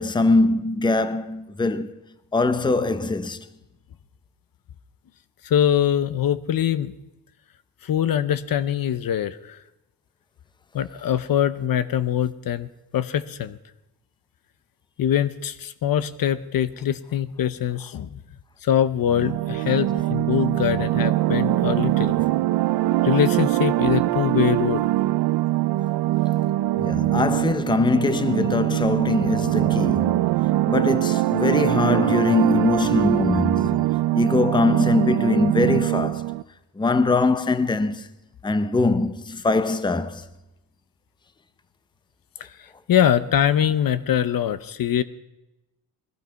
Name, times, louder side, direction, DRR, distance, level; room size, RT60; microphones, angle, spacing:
voice 1, 0.0-1.9 2.3-3.5 26.8-30.3 30.7-33.9 34.1-36.3 36.8-38.1 38.4-40.3, left 3 dB, 10° left, 0.7 m, -22 dB
voice 2, 5.4-6.9 7.8-9.6 10.7-13.6 15.0-18.2 18.6-22.2 23.0-24.8 42.9-45.0, left 10 dB, 60° left, 0.8 m, -23 dB
sound 1, 19.1-36.4, right 16 dB, 80° right, 0.5 m, -22 dB
19.5 x 12.5 x 5.8 m
cardioid pair, 135°, 39 cm